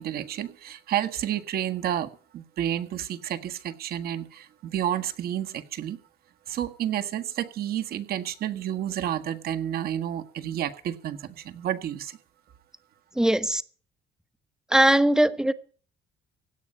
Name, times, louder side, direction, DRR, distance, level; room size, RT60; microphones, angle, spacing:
voice 1, 0.0-6.0 6.5-12.2, right 11 dB, 65° right, 1.7 m, -30 dB
voice 2, 13.1-13.6 14.7-15.5, right 1 dB, 5° right, 1.1 m, -20 dB
17.0 x 9.9 x 5.7 m
cardioid pair, 110°, 17 cm